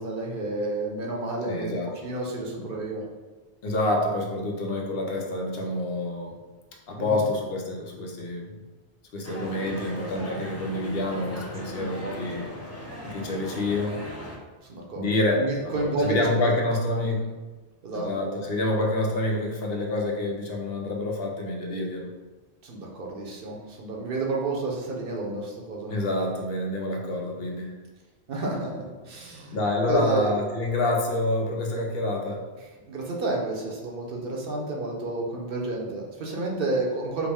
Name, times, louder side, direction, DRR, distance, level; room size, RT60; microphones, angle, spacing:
voice 1, 0.0-1.8 2.0-3.0 7.0-7.2 11.6-12.2 14.7-16.5 16.9-17.1 17.8-18.4 22.6-25.9 28.3-29.6 29.8-30.3 32.9-37.3, right 2 dB, 60° right, -1 dB, 0.8 m, -30 dB
voice 2, 1.5-1.9 2.6-2.7 3.6-6.3 6.9-8.5 9.1-12.5 13.0-14.0 15.0-15.5 15.8-17.2 17.9-22.1 25.9-27.8 29.5-32.4, left 2 dB, 70° left, 0 dB, 0.9 m, -27 dB
sound 1, 9.2-14.4, equal, 25° left, 0.3 m, -38 dB
4.7 x 2.0 x 3.4 m, 1.3 s
omnidirectional pair, 1.1 m